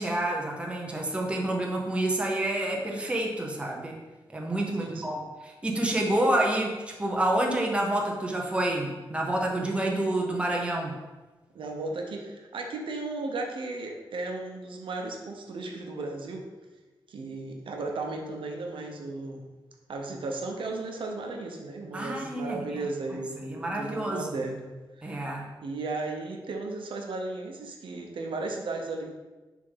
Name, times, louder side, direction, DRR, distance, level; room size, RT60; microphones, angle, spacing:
voice 1, 0.0-4.0 4.3-10.9 21.9-22.9 23.4-24.4 25.0-25.5, right 1 dB, 15° right, 0 dB, 0.8 m, -28 dB
voice 2, 4.8-5.2 11.5-16.5 17.1-19.5 19.9-29.1, right 2 dB, 80° right, 2 dB, 0.9 m, -35 dB
6.6 x 3.6 x 5.5 m, 1.2 s
wide cardioid pair, 175°, 9 cm